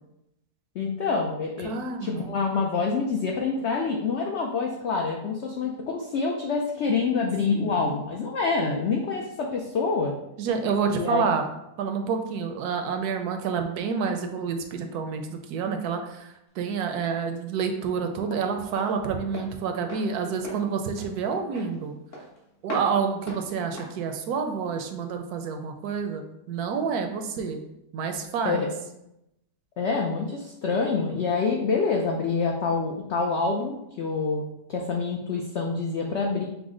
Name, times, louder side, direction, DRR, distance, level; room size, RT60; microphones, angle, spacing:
voice 1, 0.7-1.7 2.0-10.1 10.9-11.2 28.4-28.7 29.8-36.4, left 4 dB, 80° left, 0 dB, 0.6 m, -26 dB
voice 2, 1.6-2.3 7.5-7.9 10.4-11.4 11.8-21.9 22.6-27.6 27.9-28.7, right 6 dB, 75° right, 5 dB, 1.0 m, -28 dB
Walk footsteps, 16.5-25.2, equal, 50° left, 1.4 m, -42 dB
5.9 x 2.1 x 3.7 m, 0.85 s
omnidirectional pair, 1.8 m